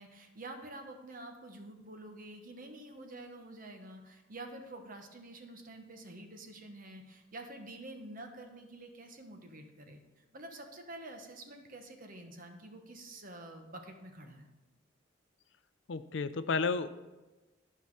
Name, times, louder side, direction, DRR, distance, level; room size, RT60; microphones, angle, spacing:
voice 1, 0.0-14.5, right 1 dB, 45° right, 5 dB, 1.1 m, -48 dB
voice 2, 15.9-16.9, left 4 dB, 70° left, 12 dB, 0.5 m, -32 dB
12.0 x 5.7 x 4.7 m, 1.1 s
head